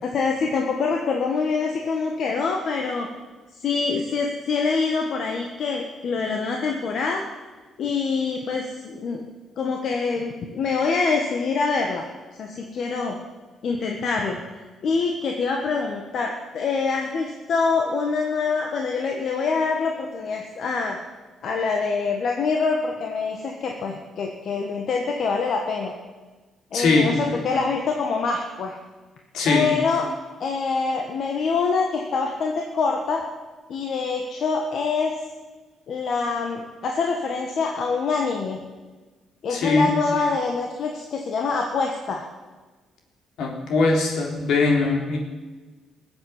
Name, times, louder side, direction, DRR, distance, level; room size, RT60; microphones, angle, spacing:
voice 1, 0.0-3.1 3.6-7.2 7.8-9.2 9.6-12.0 12.4-13.2 13.6-14.4 14.8-21.0 21.4-25.9 26.7-28.8 29.5-30.1 30.4-33.2 33.7-35.2 35.9-38.6 39.4-42.2, left 4 dB, 60° left, 2 dB, 1.6 m, -25 dB
voice 2, 26.7-27.1 29.3-29.7 39.5-39.9 43.4-45.2, left 3 dB, 80° left, 0 dB, 3.6 m, -21 dB
19.5 x 7.9 x 8.1 m, 1.3 s
cardioid pair, 90°, 0 cm